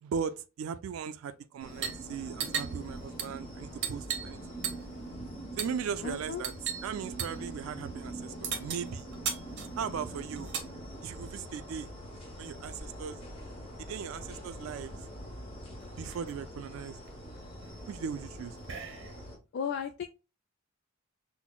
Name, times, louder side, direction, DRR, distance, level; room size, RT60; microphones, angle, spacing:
voice 1, 0.0-4.4 5.6-6.5 6.8-9.1 9.8-10.5 11.0-11.9 12.4-13.2 13.8-15.0 16.0-17.0 17.9-18.6, right 7 dB, 85° right, 0.3 m, -38 dB
sound 1, 1.6-19.4, right 1 dB, 30° left, 1.0 m, -44 dB
sound 2, 1.7-2.0 2.3-4.4 4.6-5.0 5.6-5.8 6.4-6.9 7.2-7.4 8.4-10.7 11.8-12.8 14.1-14.2 14.4-15.0 15.5-15.6 15.8-16.3 16.9-19.3, right 7 dB, 60° right, 0.7 m, -38 dB
voice 2, 6.0-6.5 8.3-8.4 19.5-20.0, left 7 dB, 55° left, 0.3 m, -35 dB
5.9 x 2.0 x 2.2 m
head